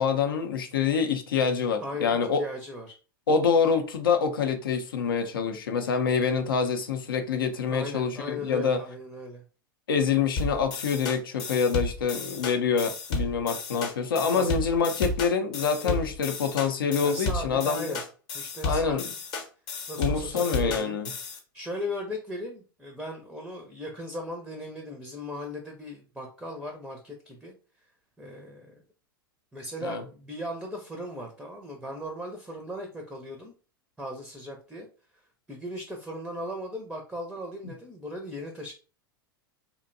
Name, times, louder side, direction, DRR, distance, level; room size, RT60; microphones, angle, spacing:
voice 1, 0.0-2.4 3.3-8.8 9.9-17.9 18.6-19.0 20.0-21.1 29.8-30.0, left 6 dB, 75° left, 0.5 m, -26 dB
voice 2, 1.8-3.0 7.7-9.4 14.3-14.8 15.8-16.0 17.0-18.0 18.3-19.0 19.9-21.0 21.5-27.5 28.2-28.7 29.5-33.5 34.0-34.9 35.5-38.7, left 1 dB, 5° right, 0.5 m, -37 dB
sound 1, 10.4-21.4, left 3 dB, 40° left, 0.8 m, -33 dB
2.6 x 2.1 x 2.5 m
hypercardioid pair, 95°, 12 cm